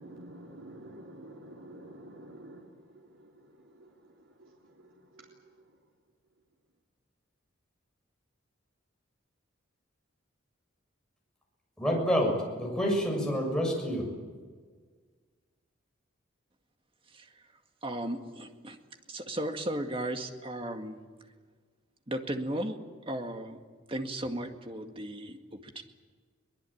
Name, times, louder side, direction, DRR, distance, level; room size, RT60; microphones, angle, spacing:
voice 1, 0.0-5.5, right 1 dB, 85° right, -2 dB, 3.5 m, -50 dB
voice 2, 11.8-14.1, equal, 5° left, 0 dB, 6.8 m, -28 dB
voice 3, 17.8-18.8 19.1-21.0 22.1-22.8 23.1-23.6 23.9-25.8, right 1 dB, 25° right, 5 dB, 2.1 m, -35 dB
23.0 x 20.5 x 8.8 m, 1.5 s
head